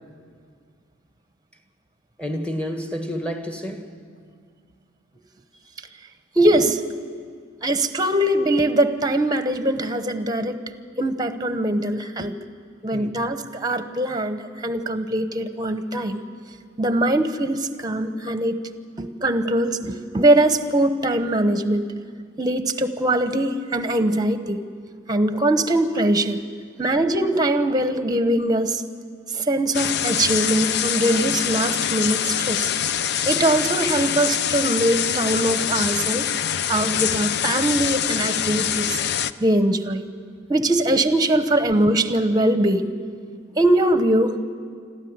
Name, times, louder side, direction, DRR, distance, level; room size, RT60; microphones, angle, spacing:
voice 1, 2.2-3.9 12.9-13.2, equal, 5° left, 4 dB, 1.7 m, -30 dB
voice 2, 6.4-6.8 7.6-10.6 11.0-12.3 12.8-16.2 16.8-18.6 19.0-21.9 22.4-24.6 25.1-26.4 26.8-28.8 29.3-32.7 33.2-36.3 36.7-39.0 39.4-40.0 40.5-42.9 43.6-44.3, right 1 dB, 20° right, 9 dB, 1.0 m, -21 dB
sound 1, 29.7-39.3, left 9 dB, 55° left, 0.5 m, -24 dB
26.0 x 13.5 x 9.6 m, 2.1 s
head